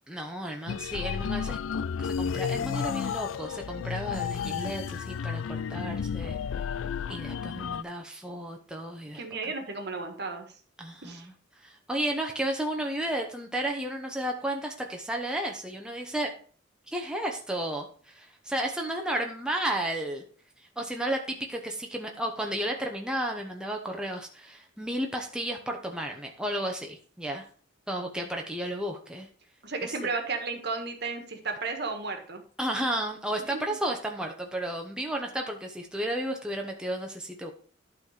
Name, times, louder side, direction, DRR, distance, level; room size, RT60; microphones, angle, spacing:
voice 1, 0.1-6.4 7.1-9.5 10.8-11.3 11.6-16.3 16.9-20.2 20.6-27.4 27.9-29.3 29.8-30.1 32.6-37.5, right 1 dB, 5° right, 1 dB, 0.9 m, -33 dB
sound 1, 0.7-7.8, left 7 dB, 85° left, 0.3 m, -32 dB
voice 2, 9.1-10.5 11.0-11.3 29.6-32.4 33.5-33.6, right 4 dB, 55° right, 5 dB, 1.6 m, -33 dB
11.5 x 4.2 x 5.0 m, 0.43 s
head